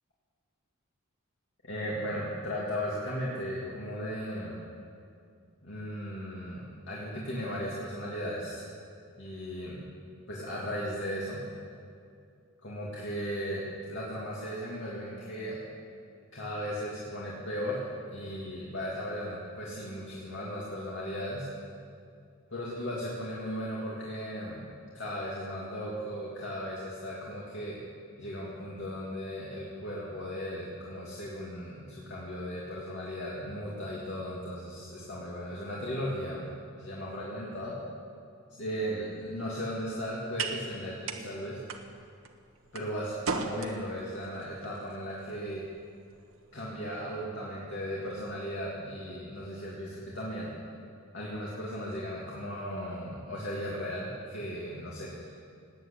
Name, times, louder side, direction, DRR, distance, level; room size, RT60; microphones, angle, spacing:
voice 1, 1.6-4.6 5.6-8.7 9.2-9.8 10.3-11.4 12.6-15.6 16.3-21.5 22.5-24.7 24.9-27.8 28.2-36.4 36.8-37.8 38.5-41.6 42.7-45.6 46.5-50.5 51.1-55.4, equal, 55° left, -6 dB, 2.6 m, -36 dB
sound 1, 38.8-47.2, right 4 dB, 65° right, 1.3 m, -41 dB
18.0 x 9.4 x 8.6 m, 2.4 s
head